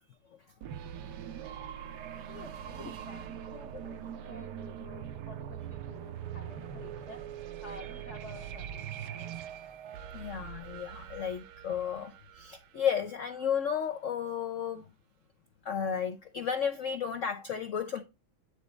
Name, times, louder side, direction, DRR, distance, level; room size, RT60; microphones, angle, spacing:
sound 1, 0.6-13.3, right 9 dB, 70° right, 1.1 m, -42 dB
voice 1, 2.3-7.2 7.6-9.3, left 2 dB, 45° left, 1.0 m, -51 dB
voice 2, 10.1-14.8 15.6-18.0, left 8 dB, 85° left, 0.6 m, -33 dB
9.6 x 4.0 x 3.3 m
omnidirectional pair, 2.2 m